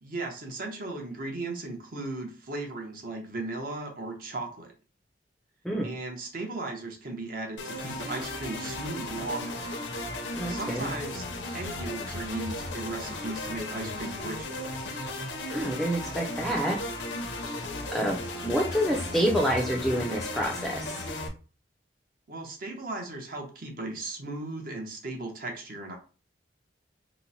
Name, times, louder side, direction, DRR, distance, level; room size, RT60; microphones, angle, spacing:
voice 1, 0.0-4.7 5.8-9.6 10.5-11.3 11.5-14.6 17.8-18.1 22.3-26.0, right 2 dB, 50° right, 2 dB, 0.8 m, -36 dB
sound 1, 7.6-21.3, left 2 dB, 75° left, 0.7 m, -35 dB
voice 2, 10.4-10.9 15.5-16.8 17.9-18.2 18.4-20.9, equal, ahead, 0 dB, 0.5 m, -27 dB
2.9 x 2.0 x 4.0 m, 0.35 s
head